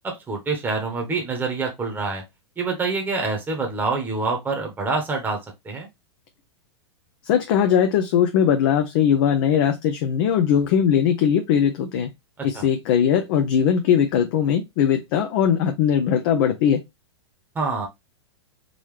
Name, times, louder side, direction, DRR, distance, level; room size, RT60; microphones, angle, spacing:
voice 1, 0.0-2.2 2.6-5.4 5.6-5.9 12.4-12.7 17.5-17.9, right 3 dB, 15° right, 1.1 m, -26 dB
voice 2, 7.2-12.1 12.4-16.8, left 8 dB, 50° left, 0.6 m, -20 dB
3.8 x 3.0 x 3.1 m
hypercardioid pair, 105°, 14 cm